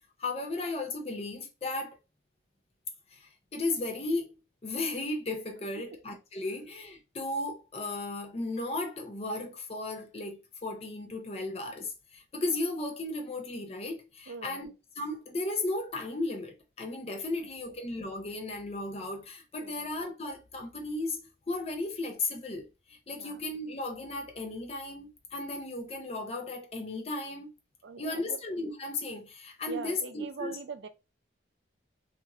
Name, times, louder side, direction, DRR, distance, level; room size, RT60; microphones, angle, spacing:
voice 1, 0.2-2.0 3.1-14.7 15.0-27.5 28.0-30.6, left 2 dB, 35° left, 0.5 m, -35 dB
voice 2, 14.3-14.7 19.6-19.9 23.2-23.4 27.8-28.4 29.7-30.9, right 5 dB, 70° right, 0.4 m, -42 dB
2.9 x 2.5 x 2.3 m
head